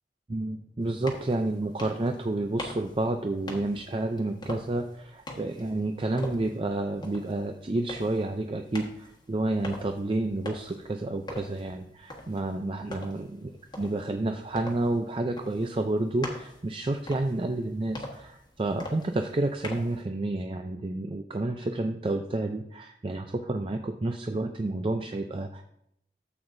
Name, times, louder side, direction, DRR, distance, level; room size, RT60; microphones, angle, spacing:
voice 1, 0.3-13.5 13.8-25.6, right 2 dB, 30° right, 5 dB, 0.4 m, -30 dB
sound 1, 0.8-20.0, left 1 dB, 25° left, 1.4 m, -44 dB
13.0 x 7.9 x 2.6 m, 0.76 s
head